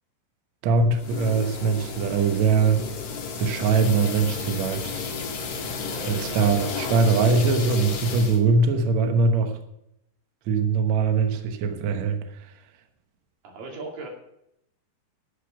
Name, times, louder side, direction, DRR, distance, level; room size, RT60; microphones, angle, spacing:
voice 1, 0.6-2.9 3.4-5.0 6.0-9.6 10.5-12.5, right 4 dB, 80° right, 6 dB, 1.6 m, -22 dB
sound 1, 0.9-8.4, left 5 dB, 55° left, 2.4 m, -33 dB
voice 2, 5.4-6.5 13.4-14.1, right 2 dB, 55° right, 0 dB, 3.8 m, -38 dB
12.5 x 6.8 x 7.0 m, 0.80 s
omnidirectional pair, 5.0 m